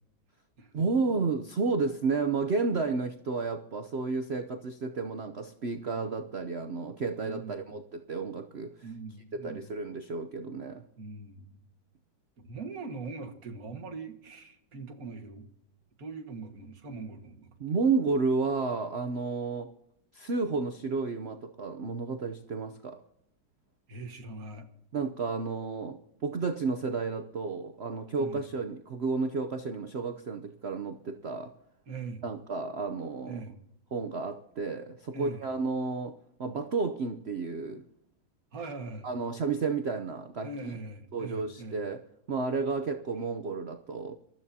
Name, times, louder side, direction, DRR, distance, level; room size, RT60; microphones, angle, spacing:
voice 1, 0.7-8.9 9.3-10.8 17.6-19.7 20.1-23.0 24.9-31.5 32.2-33.4 33.9-37.8 39.0-40.7 41.1-44.2, right 4 dB, 85° right, 0.5 m, -32 dB
voice 2, 7.2-7.8 8.8-9.7 11.0-11.6 12.4-15.5 16.0-17.5 23.9-24.7 28.2-28.5 31.9-32.2 33.3-33.6 35.1-35.4 38.5-39.1 40.4-41.8, right 3 dB, 45° right, 2.0 m, -41 dB
27.0 x 13.0 x 2.8 m
omnidirectional pair, 2.2 m